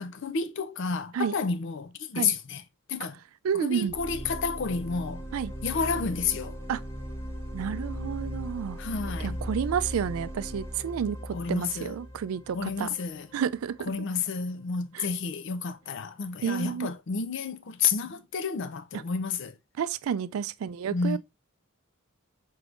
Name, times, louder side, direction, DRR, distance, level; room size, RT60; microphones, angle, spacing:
voice 1, 0.0-2.6 2.9-3.2 3.5-5.2 5.6-6.6 8.8-9.4 11.3-12.0 12.5-13.3 13.9-19.6 20.9-21.2, left 5 dB, 60° left, 0.5 m, -30 dB
voice 2, 3.4-3.9 5.3-5.5 6.7-6.8 7.5-8.8 9.2-12.9 13.3-13.8 14.9-15.1 16.4-16.9 19.8-21.2, right 7 dB, 85° right, 0.3 m, -30 dB
sound 1, 3.9-13.7, equal, 15° left, 0.9 m, -38 dB
4.6 x 3.5 x 2.5 m
head